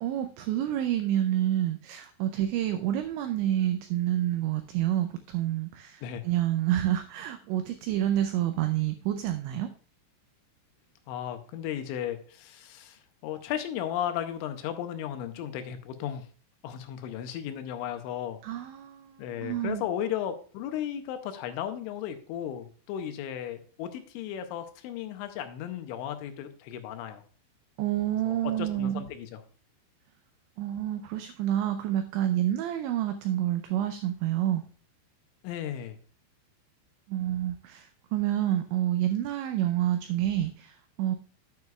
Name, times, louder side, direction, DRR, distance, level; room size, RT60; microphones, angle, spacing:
voice 1, 0.0-9.7 18.4-19.8 27.8-29.0 30.6-34.6 37.1-41.2, right 12 dB, 90° right, 8 dB, 2.6 m, -28 dB
voice 2, 11.1-16.3 16.6-18.4 19.2-27.2 28.3-29.4 35.4-36.0, left 10 dB, 80° left, 7 dB, 3.0 m, -35 dB
9.5 x 9.4 x 2.3 m, 0.40 s
omnidirectional pair, 5.9 m